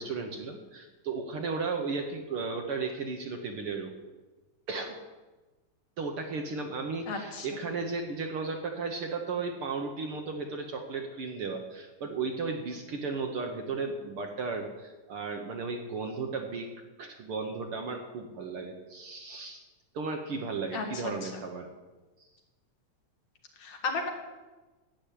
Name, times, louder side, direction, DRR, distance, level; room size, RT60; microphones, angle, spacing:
voice 1, 0.0-3.9 4.7-5.0 6.0-16.7 17.0-19.6 19.9-21.7, right 4 dB, 60° right, 4 dB, 1.7 m, -35 dB
voice 2, 7.1-7.5 20.7-21.4 23.6-24.1, left 4 dB, 70° left, 3 dB, 3.1 m, -34 dB
12.0 x 9.6 x 8.5 m, 1.2 s
omnidirectional pair, 3.4 m